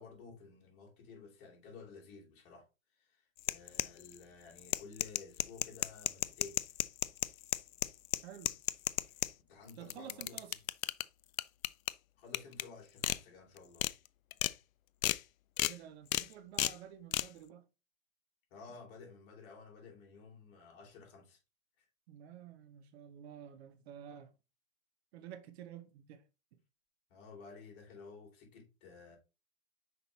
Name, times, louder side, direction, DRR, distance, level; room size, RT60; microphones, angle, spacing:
voice 1, 0.0-6.6 9.5-10.4 12.2-13.9 18.5-21.4 21.8-21.9 27.1-29.2, left 4 dB, 45° left, 3.4 m, -53 dB
sound 1, 3.4-4.2 4.6-9.3 9.7-11.0 11.4-11.9 12.3-12.6 13.0-13.2 13.6-13.9 14.3-14.5 15.0-15.2 15.6-15.7 16.1-16.3 16.6-16.7 17.1-17.3, left 13 dB, 85° left, 0.5 m, -33 dB
voice 2, 8.2-8.6 9.8-10.6 15.6-17.7 22.1-24.3 25.1-26.2 26.5-26.6, right 9 dB, 50° right, 1.0 m, -51 dB
5.9 x 5.1 x 3.1 m
hypercardioid pair, 135°, 40 cm